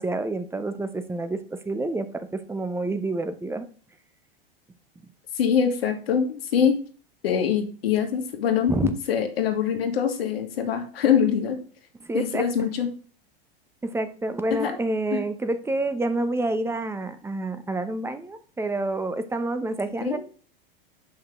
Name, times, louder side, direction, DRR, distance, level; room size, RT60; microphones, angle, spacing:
voice 1, 0.0-3.7 8.7-8.9 12.0-12.7 13.8-20.2, right 2 dB, 10° right, 10 dB, 0.8 m, -28 dB
voice 2, 5.3-6.8 7.2-8.7 9.1-11.5 12.1-12.9 14.6-14.7 15.1-15.2 20.0-20.2, left 8 dB, 80° left, 5 dB, 1.8 m, -23 dB
6.6 x 5.7 x 3.7 m, 0.40 s
hypercardioid pair, 110°, 30 cm